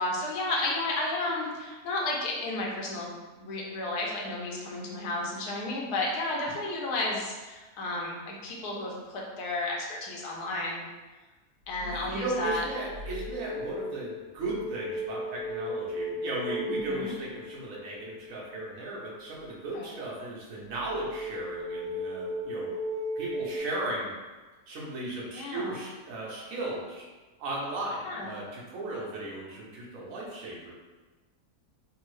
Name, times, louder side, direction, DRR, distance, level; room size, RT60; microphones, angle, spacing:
voice 1, 0.0-3.1 3.4-10.8 11.7-12.6 16.9-17.1 19.7-19.9 25.3-25.8 28.0-28.3, left 2 dB, 85° left, -2 dB, 1.2 m, -32 dB
voice 2, 11.8-22.7 23.2-24.1 24.7-27.0 27.4-30.7, right 2 dB, 65° right, -4 dB, 1.2 m, -36 dB
sound 1, 11.8-12.1 12.6-18.5 21.0-23.6, equal, 90° right, 1.3 m, -36 dB
3.5 x 2.0 x 3.1 m, 1.2 s
omnidirectional pair, 1.6 m